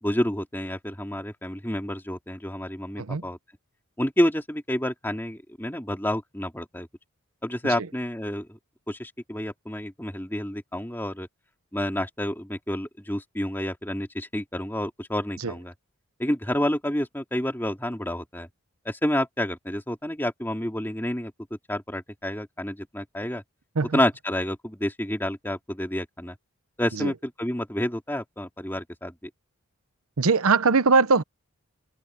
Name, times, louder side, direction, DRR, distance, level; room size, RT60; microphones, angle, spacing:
voice 1, 0.0-3.4 4.0-6.9 7.4-8.6 8.9-11.3 11.7-15.7 16.2-18.5 18.8-21.3 21.7-23.4 23.9-26.3 26.8-29.2, left 1 dB, 10° left, 2.5 m, -29 dB
voice 2, 30.2-31.2, right 4 dB, 80° right, 0.9 m, -21 dB
open air
head